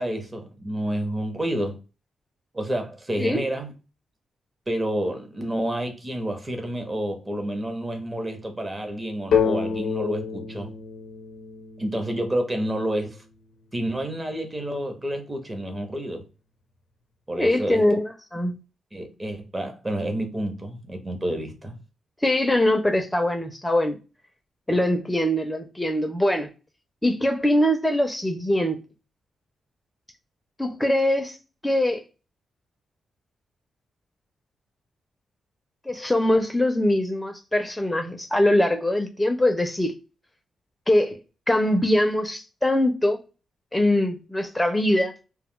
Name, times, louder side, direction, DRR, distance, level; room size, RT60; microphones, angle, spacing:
voice 1, 0.0-1.8 2.5-3.7 4.7-10.7 11.8-13.2 13.7-16.2 17.3-17.9 18.9-21.7, right 1 dB, 25° right, 0.9 m, -29 dB
sound 1, 9.3-13.0, left 6 dB, 75° left, 0.5 m, -28 dB
voice 2, 17.4-18.5 22.2-24.0 24.7-26.5 27.0-28.8 30.6-31.4 31.6-32.0 35.9-39.9 40.9-41.2 41.5-43.2 43.7-45.1, left 1 dB, 15° left, 0.5 m, -22 dB
2.3 x 2.0 x 3.6 m
supercardioid pair, 60°, 0 cm